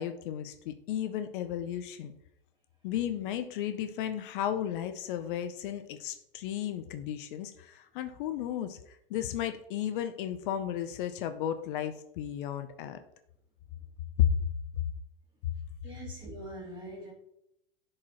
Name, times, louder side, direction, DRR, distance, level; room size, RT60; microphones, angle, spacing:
voice 1, 0.0-2.1 2.8-13.0 14.2-14.3, left 10 dB, 60° left, 9 dB, 0.7 m, -33 dB
voice 2, 15.8-17.1, right 1 dB, 15° right, -3 dB, 2.5 m, -43 dB
11.0 x 4.8 x 3.0 m, 0.79 s
hypercardioid pair, 120°, 30 cm